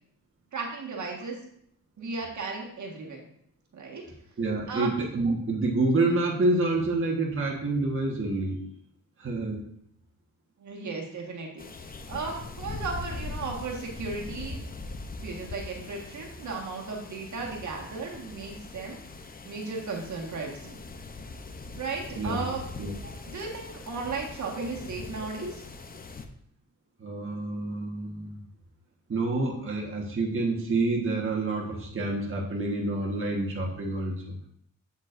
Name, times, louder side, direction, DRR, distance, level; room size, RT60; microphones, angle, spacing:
voice 1, 0.5-1.4 2.0-3.3 3.7-4.0 4.7-4.9 10.6-11.7 12.1-14.6 15.2-19.0 19.4-20.8 21.8-22.6 23.3-25.6, right 4 dB, 60° right, 0 dB, 1.7 m, -35 dB
voice 2, 4.4-8.6 9.2-9.7 22.2-22.5 22.8-22.9 25.4-25.5 27.0-28.4 29.1-34.4, right 2 dB, 40° right, -2 dB, 1.4 m, -28 dB
sound 1, 11.6-26.3, left 3 dB, 25° left, 0.7 m, -41 dB
8.2 x 7.2 x 2.6 m, 0.68 s
cardioid pair, 95°, 33 cm